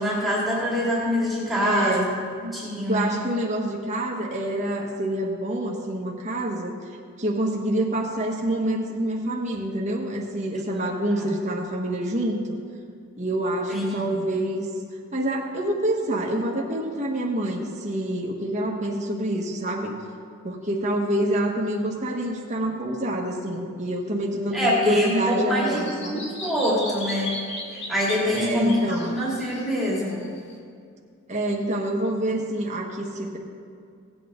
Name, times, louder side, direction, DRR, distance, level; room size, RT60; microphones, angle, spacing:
voice 1, 0.0-2.1 2.4-3.2 10.5-10.8 11.2-11.3 13.7-14.2 24.5-27.4 27.9-30.3, equal, ahead, -7 dB, 2.5 m, -25 dB
voice 2, 1.6-2.1 2.9-6.8 7.2-12.6 13.2-14.7 15.1-19.9 20.4-26.2 28.3-29.2 31.3-33.4, right 1 dB, 35° right, -1 dB, 1.4 m, -27 dB
Bird vocalization bird call bird song, 24.6-30.5, left 1 dB, 55° left, 2.1 m, -37 dB
17.5 x 8.5 x 3.8 m, 2.3 s
head